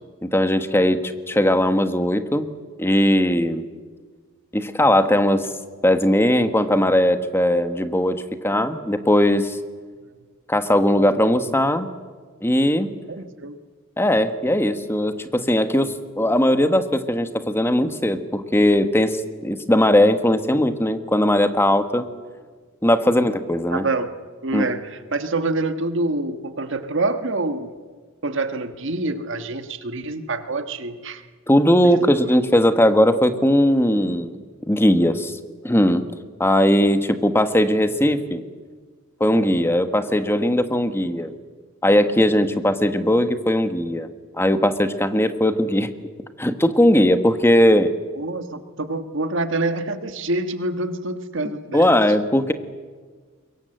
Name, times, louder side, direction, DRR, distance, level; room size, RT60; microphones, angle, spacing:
voice 1, 0.2-2.5 2.8-3.6 4.5-5.5 5.8-9.6 10.5-11.9 12.4-12.9 14.0-22.1 22.8-23.8 24.5-24.7 31.5-35.4 35.6-36.1 36.4-38.4 39.2-41.3 41.8-44.1 44.4-45.9 46.4-47.9 51.7-52.5, left 1 dB, 10° left, 9 dB, 1.3 m, -19 dB
voice 2, 13.1-13.5 23.7-24.1 24.4-27.7 28.2-31.2 48.2-51.9, right 2 dB, 60° right, 9 dB, 1.5 m, -26 dB
25.0 x 22.5 x 7.8 m, 1.5 s
head